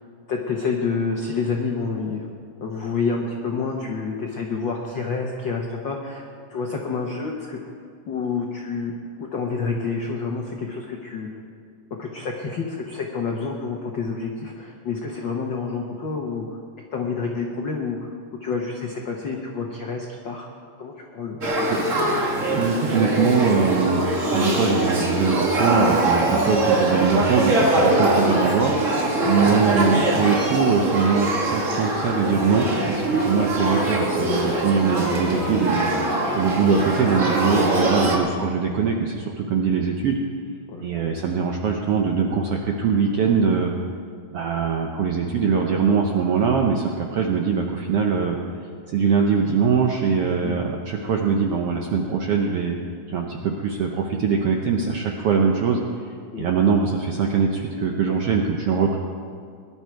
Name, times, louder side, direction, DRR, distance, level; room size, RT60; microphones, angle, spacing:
voice 1, 0.3-2.3 2.6-7.6 8.1-8.9 9.2-11.3 12.0-16.5 16.9-18.1 18.4-20.5 20.8-21.7 28.9-29.3 37.9-38.1 40.7-40.9 50.3-50.6 56.3-56.5, left 4 dB, 75° left, 0 dB, 1.0 m, -28 dB
Male speech man speaking / Child speech kid speaking / Conversation, 21.4-38.2, right 1 dB, 40° right, 1.1 m, -22 dB
voice 2, 22.5-40.2 40.8-43.7 44.3-48.4 48.9-52.8 53.1-59.0, right 5 dB, 75° right, 1 dB, 1.4 m, -22 dB
19.0 x 11.5 x 4.6 m, 2.2 s
omnidirectional pair, 3.7 m